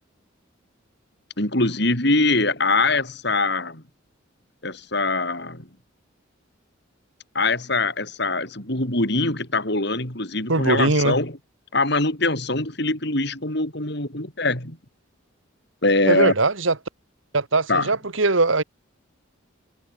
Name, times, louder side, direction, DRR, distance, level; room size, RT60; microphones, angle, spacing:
voice 1, 1.4-3.8 4.6-5.7 7.3-11.4 11.7-14.8 15.8-16.3 17.7-17.9, left 2 dB, 55° left, 5.8 m, -23 dB
voice 2, 10.5-11.2 16.0-16.8 17.3-18.6, right 3 dB, 75° right, 1.8 m, -20 dB
head